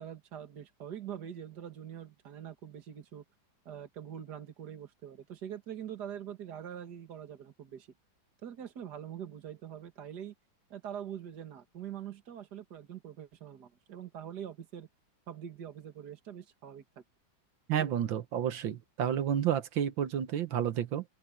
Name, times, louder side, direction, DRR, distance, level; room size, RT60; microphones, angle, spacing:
voice 1, 0.0-3.2 3.7-7.9 8.4-10.3 10.7-14.9 15.3-17.0 17.8-18.0, right 9 dB, 55° right, 2.3 m, -44 dB
voice 2, 17.7-21.0, right 9 dB, 75° right, 1.8 m, -30 dB
open air
omnidirectional pair, 2.2 m